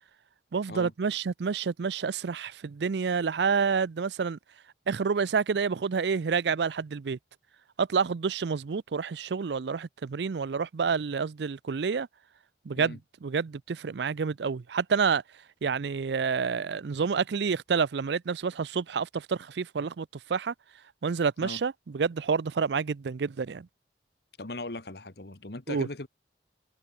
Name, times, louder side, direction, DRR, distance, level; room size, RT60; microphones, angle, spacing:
voice 1, 0.5-4.4 4.9-7.2 7.8-12.1 12.7-15.2 15.6-20.5 21.0-23.7 25.7-25.9, right 5 dB, 70° right, 0.5 m, -28 dB
voice 2, 24.4-26.1, left 2 dB, 65° left, 1.7 m, -39 dB
head